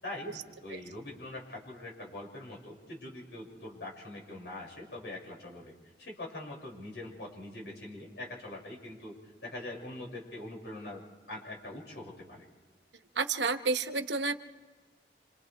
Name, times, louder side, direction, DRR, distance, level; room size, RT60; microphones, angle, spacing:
voice 1, 0.0-5.7 6.0-12.5, left 1 dB, 80° left, -2 dB, 6.6 m, -43 dB
voice 2, 13.1-14.3, right 4 dB, 90° right, 8 dB, 1.1 m, -30 dB
30.0 x 26.5 x 3.5 m, 1.4 s
head